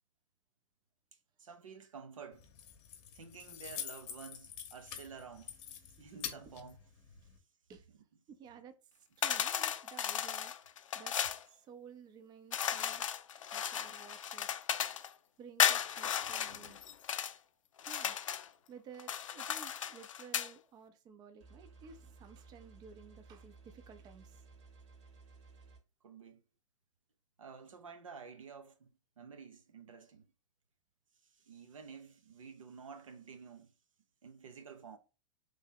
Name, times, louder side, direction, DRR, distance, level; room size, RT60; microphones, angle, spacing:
voice 1, 1.4-2.5 3.1-5.6 6.0-6.8 26.0-26.4 27.4-28.9 29.2-30.3 31.3-33.7 34.2-35.0, right 6 dB, 80° right, 0.7 m, -51 dB
Keys jangling, 2.3-7.4, left 9 dB, 40° left, 0.9 m, -46 dB
voice 2, 8.3-8.8 9.2-10.5 10.9-11.1 11.5-13.1 13.5-14.6 15.4-16.8 17.9-18.2 18.7-24.5, right 6 dB, 25° right, 0.5 m, -54 dB
sound 1, 9.2-11.4 12.5-15.1 15.6-17.3 17.8-18.5 19.0-20.5, left 9 dB, 80° left, 0.4 m, -35 dB
sound 2, 21.4-25.8, right 4 dB, 65° right, 1.4 m, -57 dB
3.2 x 2.7 x 3.7 m
hypercardioid pair, 110°, 17 cm